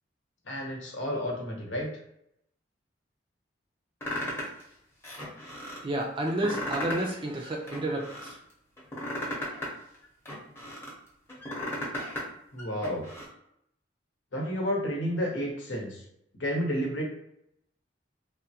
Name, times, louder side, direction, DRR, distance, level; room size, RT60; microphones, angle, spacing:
voice 1, 0.5-1.9 12.5-13.1 14.3-16.0 16.4-17.0, equal, 80° left, -1 dB, 0.9 m, -31 dB
sound 1, 4.0-4.6 5.0-5.8 6.3-7.1 7.4-8.3 8.8-10.9 11.3-12.3 12.6-13.3, left 1 dB, 15° left, 0.8 m, -35 dB
voice 2, 5.8-8.4, right 1 dB, 25° right, 0 dB, 0.4 m, -30 dB
3.4 x 2.1 x 2.8 m, 0.76 s
head